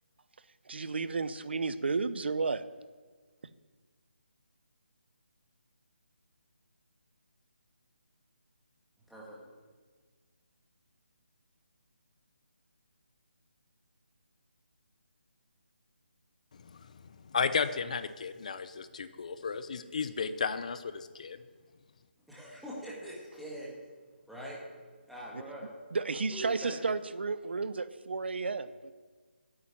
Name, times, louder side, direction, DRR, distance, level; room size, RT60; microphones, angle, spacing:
voice 1, 0.7-2.6 25.3-25.4 25.9-28.9, right 4 dB, 60° right, 14 dB, 0.8 m, -32 dB
voice 2, 9.1-9.4 22.3-23.7 24.3-24.6 25.1-25.7 26.3-26.8, right 1 dB, ahead, -7 dB, 1.9 m, -42 dB
voice 3, 16.6-16.9 17.2-21.4, left 5 dB, 35° left, 12 dB, 0.7 m, -34 dB
9.8 x 8.8 x 8.9 m, 1.5 s
hypercardioid pair, 170°, 6 cm